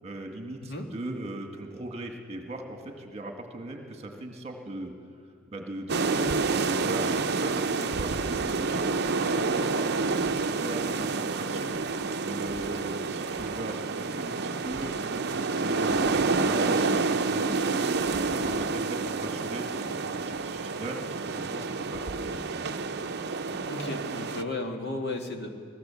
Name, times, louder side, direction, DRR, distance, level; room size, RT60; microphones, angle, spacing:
voice 1, 0.0-4.9 5.5-22.6, right 1 dB, 30° right, 3 dB, 1.8 m, -39 dB
sound 1, 5.9-24.4, right 4 dB, 50° right, 0.7 m, -29 dB
voice 2, 23.7-25.5, left 2 dB, 50° left, 3 dB, 1.8 m, -34 dB
21.5 x 17.0 x 7.1 m, 2.4 s
head